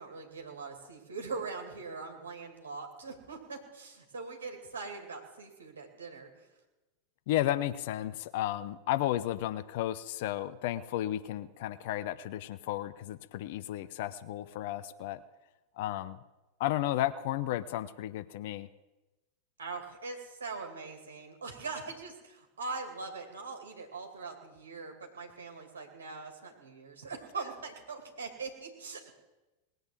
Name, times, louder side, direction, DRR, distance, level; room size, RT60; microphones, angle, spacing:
voice 1, 0.0-6.5 19.6-29.1, right 4 dB, 65° right, 3 dB, 2.5 m, -42 dB
voice 2, 7.3-15.2 15.8-16.2 16.6-18.7, left 13 dB, 50° left, 14 dB, 0.7 m, -33 dB
19.0 x 8.0 x 7.8 m, 1.1 s
figure-of-eight pair, 90°, 0 cm